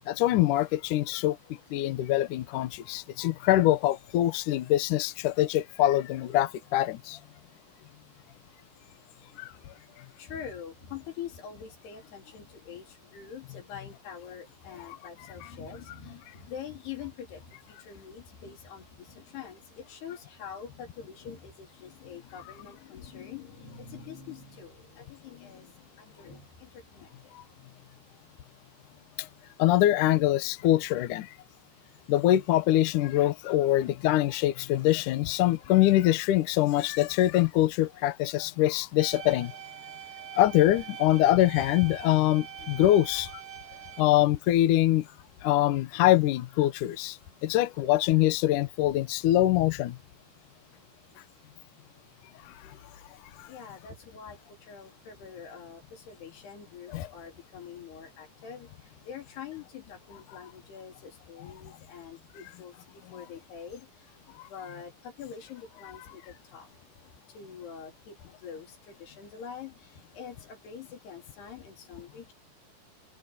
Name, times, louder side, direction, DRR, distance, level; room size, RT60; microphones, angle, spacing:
voice 1, 0.1-1.4 1.7-7.2 9.4-9.7 15.4-15.5 27.3-27.4 29.2-29.3 29.6-31.3 32.1-39.5 40.3-43.3 44.0-45.1 45.4-50.0 52.4-52.7 53.4-53.5 56.9-57.1, left 14 dB, 65° left, 2.2 m, -24 dB
voice 2, 10.2-27.7 53.5-66.7 67.3-72.3, left 7 dB, 90° left, 5.6 m, -45 dB
sound 1, 39.0-44.0, right 9 dB, 40° right, 1.4 m, -43 dB
omnidirectional pair, 4.5 m